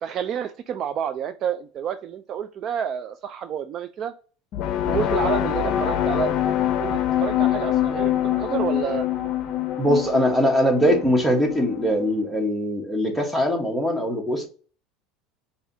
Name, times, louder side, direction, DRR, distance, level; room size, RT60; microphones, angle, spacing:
voice 1, 0.0-4.1 4.8-9.1, right 8 dB, 40° right, 10 dB, 0.3 m, -29 dB
sound 1, 4.5-12.1, left 11 dB, 50° left, 0.6 m, -24 dB
voice 2, 9.8-14.5, equal, 5° right, 2 dB, 1.1 m, -21 dB
4.8 x 2.7 x 2.6 m, 0.38 s
supercardioid pair, 135°, 0 cm